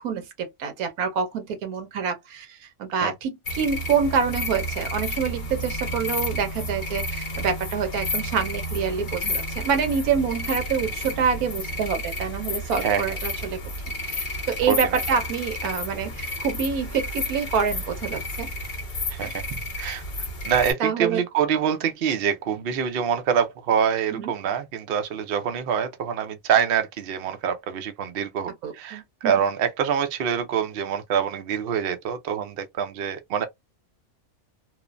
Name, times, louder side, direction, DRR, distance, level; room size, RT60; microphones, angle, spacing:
voice 1, 0.0-13.6 14.0-18.5 20.8-21.2 24.2-24.3 28.6-29.3, right 6 dB, 80° right, 1.2 m, -27 dB
sound 1, 3.4-20.7, left 1 dB, 40° left, 0.8 m, -31 dB
voice 2, 14.7-15.0 19.1-19.4 19.8-20.0 20.4-33.5, right 8 dB, 60° right, 0.6 m, -25 dB
3.0 x 2.1 x 2.4 m
omnidirectional pair, 1.5 m